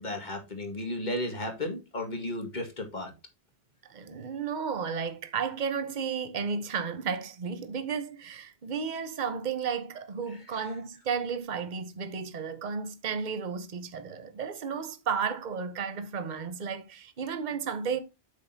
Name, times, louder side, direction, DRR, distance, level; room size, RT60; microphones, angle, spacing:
voice 1, 0.0-3.1 10.5-10.6, left 1 dB, 45° left, 2.0 m, -34 dB
voice 2, 3.9-18.0, right 6 dB, 45° right, 1.0 m, -33 dB
8.3 x 6.2 x 2.8 m
omnidirectional pair, 1.1 m